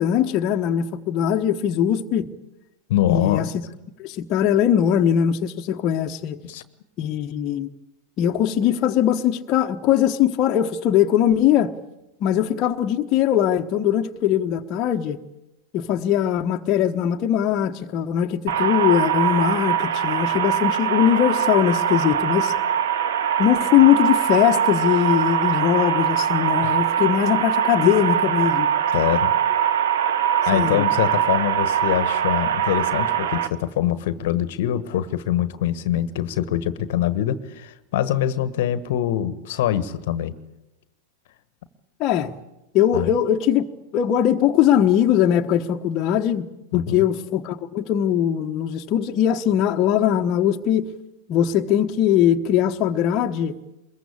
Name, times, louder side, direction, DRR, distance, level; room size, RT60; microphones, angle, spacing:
voice 1, 0.0-2.3 3.1-3.4 4.0-6.4 7.0-7.7 8.2-11.7 12.2-15.2 15.7-22.5 23.4-28.7 30.5-30.8 42.0-42.3 42.7-43.7 43.9-50.9 51.3-53.5, left 10 dB, 40° left, 1.2 m, -20 dB
voice 2, 2.9-3.5 6.4-6.6 18.6-18.7 26.6-26.8 28.9-29.3 30.5-40.3 42.9-43.1 46.7-47.0, left 11 dB, 55° left, 1.3 m, -24 dB
sound 1, 18.5-33.5, right 8 dB, 65° right, 1.3 m, -22 dB
24.0 x 22.0 x 8.6 m
figure-of-eight pair, 95°, 0 cm